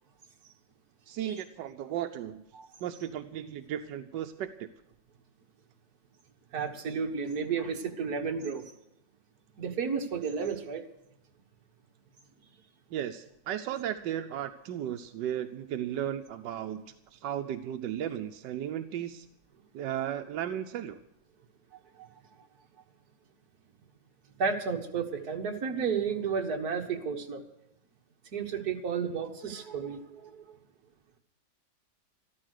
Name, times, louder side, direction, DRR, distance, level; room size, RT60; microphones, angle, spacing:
voice 1, 1.1-2.4 2.8-4.7 12.9-16.8 17.1-19.3 19.7-21.0, right 10 dB, 85° right, 8 dB, 1.4 m, -35 dB
voice 2, 6.5-8.7 9.6-10.9 22.0-22.1 24.4-27.4 28.3-30.6, right 6 dB, 60° right, 3 dB, 1.9 m, -32 dB
13.0 x 13.0 x 6.5 m, 0.83 s
omnidirectional pair, 1.9 m